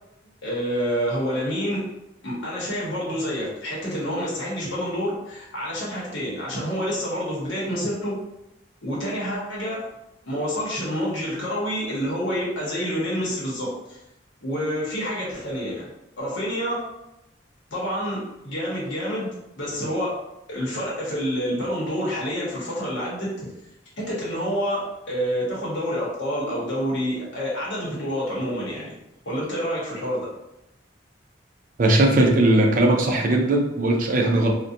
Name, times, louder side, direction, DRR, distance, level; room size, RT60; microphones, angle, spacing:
voice 1, 0.4-1.8 2.2-8.2 8.8-9.8 10.2-14.0 14.4-15.9 16.2-16.8 17.7-20.2 20.5-23.3 24.0-28.9 29.2-30.3, equal, 85° left, -6 dB, 0.9 m, -28 dB
voice 2, 31.8-34.5, right 1 dB, 50° right, 1 dB, 0.4 m, -19 dB
2.4 x 2.1 x 2.6 m, 0.88 s
head